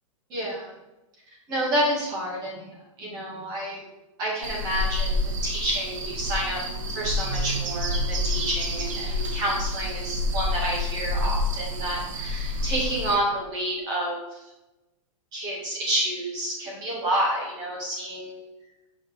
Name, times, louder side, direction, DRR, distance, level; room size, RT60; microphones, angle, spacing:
voice 1, 0.3-0.8 1.5-2.7 3.0-3.8 4.2-6.6 6.9-14.4 15.3-18.4, right 1 dB, 25° right, -3 dB, 2.0 m, -29 dB
sound 1, 4.4-13.2, left 1 dB, 65° right, 1.2 m, -28 dB
5.3 x 5.1 x 5.0 m, 0.98 s
supercardioid pair, 170°, 18 cm